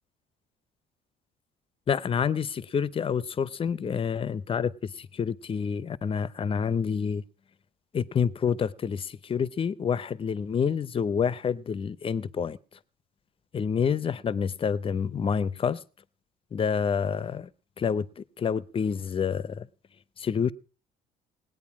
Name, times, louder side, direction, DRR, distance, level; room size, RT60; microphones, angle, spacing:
voice 1, 1.9-7.2 7.9-12.6 13.5-15.8 16.5-17.5 17.8-19.7 20.2-20.5, left 7 dB, 35° left, 0.6 m, -28 dB
18.5 x 9.2 x 6.0 m
cardioid pair, 110°, 17 cm